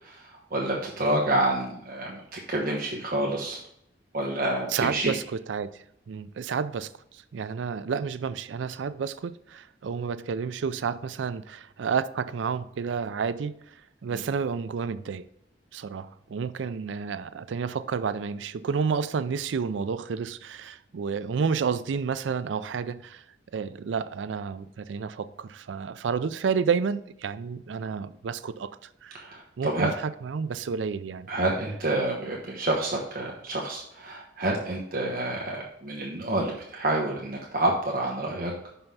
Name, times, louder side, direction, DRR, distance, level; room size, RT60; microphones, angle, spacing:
voice 1, 0.0-3.6 4.1-5.1 29.1-29.9 31.3-38.5, right 1 dB, 50° right, 1.1 m, -28 dB
voice 2, 4.7-15.2 15.7-23.2 23.5-29.2 29.6-29.9 30.2-31.3, right 6 dB, 85° right, 0.4 m, -30 dB
5.8 x 5.6 x 5.5 m
head